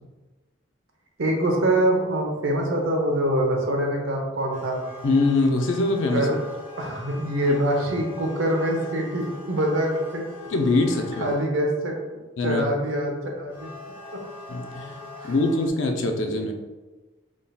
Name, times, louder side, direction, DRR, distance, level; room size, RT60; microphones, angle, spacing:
voice 1, 1.2-4.8 6.1-6.4 6.8-10.2 11.2-12.0 12.4-13.7 15.2-15.3, right 1 dB, 90° right, 1 dB, 0.8 m, -24 dB
sound 1, 4.5-11.4 13.3-15.7, left 2 dB, 10° right, 0.6 m, -42 dB
voice 2, 5.0-6.3 7.5-7.6 10.5-11.3 12.4-12.6 14.5-16.5, left 2 dB, 75° left, 4 dB, 0.5 m, -23 dB
3.9 x 3.6 x 2.3 m, 1.2 s
head